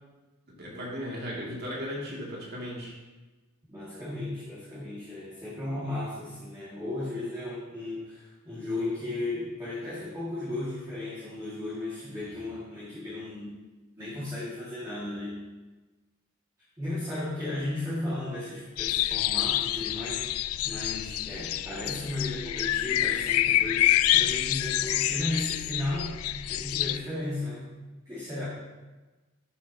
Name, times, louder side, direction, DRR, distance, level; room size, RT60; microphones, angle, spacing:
voice 1, 0.6-3.0, equal, 50° right, -4 dB, 2.6 m, -36 dB
voice 2, 3.7-13.6 14.0-15.4 16.8-26.2 26.5-27.7 28.1-28.5, left 2 dB, 15° right, -10 dB, 2.1 m, -35 dB
sound 1, 18.8-27.0, left 14 dB, 85° left, 0.3 m, -27 dB
12.5 x 7.3 x 2.9 m, 1.2 s
head